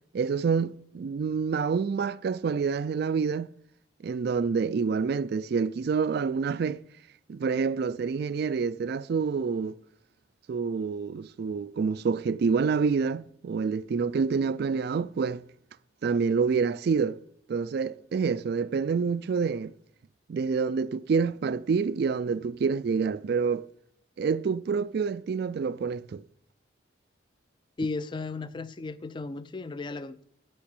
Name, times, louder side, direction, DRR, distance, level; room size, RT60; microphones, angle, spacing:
voice 1, 0.1-3.5 4.0-6.8 7.3-9.8 10.5-15.4 16.0-17.2 17.5-19.7 20.3-23.6 24.2-26.2, right 5 dB, 55° right, 0.3 m, -27 dB
voice 2, 27.8-30.2, left 3 dB, 25° left, 0.4 m, -35 dB
8.6 x 6.3 x 8.2 m
head